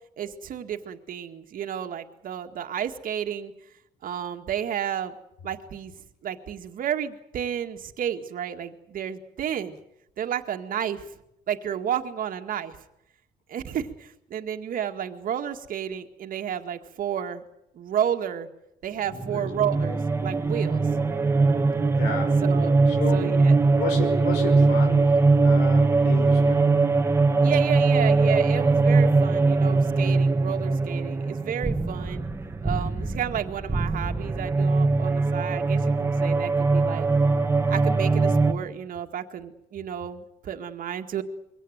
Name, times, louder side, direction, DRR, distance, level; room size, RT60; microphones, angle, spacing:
voice 1, 0.2-3.5 4.0-5.1 5.4-5.9 6.2-9.8 10.2-11.1 11.5-12.8 13.5-17.4 17.7-18.5 18.8-20.8 22.4-22.8 23.1-23.6 27.4-32.3 32.6-37.1 37.7-41.2, right 9 dB, 55° right, 5 dB, 2.0 m, -31 dB
voice 2, 19.1-19.5 22.0-22.4 23.0-23.4 23.8-25.1 25.4-26.6, left 4 dB, 85° left, 6 dB, 5.7 m, -33 dB
sound 1, 19.1-38.5, right 3 dB, 15° right, 1.7 m, -21 dB
23.0 x 17.5 x 9.4 m, 0.81 s
cardioid pair, 110°, 17 cm